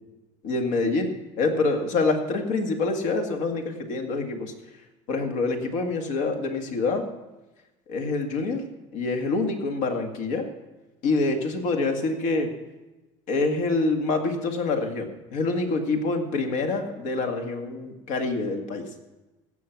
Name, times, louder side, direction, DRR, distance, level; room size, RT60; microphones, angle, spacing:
voice 1, 0.4-4.5 5.1-7.1 7.9-8.6 8.9-10.5 11.0-12.5 13.3-18.9, left 3 dB, 60° left, 4 dB, 2.0 m, -26 dB
16.5 x 6.8 x 5.9 m, 1.1 s
supercardioid pair, 140°, 15 cm